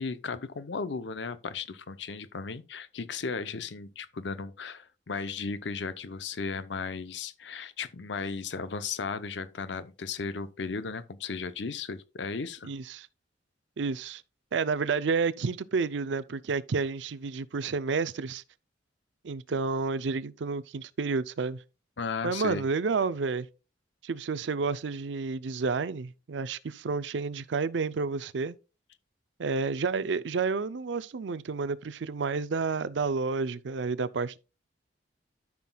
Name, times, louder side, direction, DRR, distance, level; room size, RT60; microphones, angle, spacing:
voice 1, 0.0-12.7 19.5-19.6 22.0-22.6, left 4 dB, 70° left, 0.7 m, -35 dB
voice 2, 12.6-13.1 13.8-14.2 14.5-18.4 19.2-21.6 22.2-23.5 24.0-28.6 29.4-34.4, right 4 dB, 75° right, 0.5 m, -30 dB
13.0 x 5.9 x 2.3 m
head